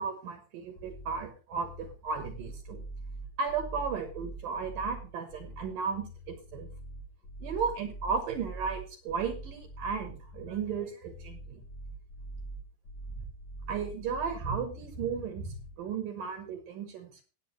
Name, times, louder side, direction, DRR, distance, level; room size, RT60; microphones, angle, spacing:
voice 1, 0.0-2.8 3.4-6.7 7.4-11.6 13.7-17.1, right 6 dB, 65° right, 6 dB, 2.6 m, -35 dB
sound 1, 0.8-15.8, right 2 dB, 80° left, 1.1 m, -44 dB
17.0 x 8.9 x 3.2 m, 0.34 s
omnidirectional pair, 4.7 m